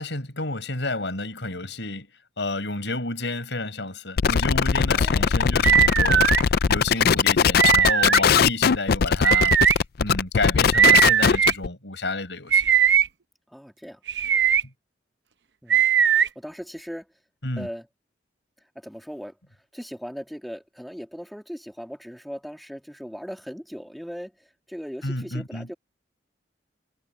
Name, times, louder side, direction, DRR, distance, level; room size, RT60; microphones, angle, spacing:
voice 1, 0.0-2.1 2.4-12.6 17.4-17.7 25.0-25.7, left 2 dB, 75° left, 5.8 m, -30 dB
sound 1, 4.2-11.7, left 6 dB, 55° left, 0.4 m, -20 dB
voice 2, 4.9-5.4 13.5-14.0 15.6-15.9 16.1-17.1 17.6-17.9 18.7-19.4 19.7-25.7, equal, ahead, 2.5 m, -38 dB
sound 2, 5.6-6.4 7.6-8.2 9.2-9.7 10.7-11.5 12.5-13.1 14.1-14.6 15.7-16.3, right 8 dB, 70° right, 0.8 m, -19 dB
head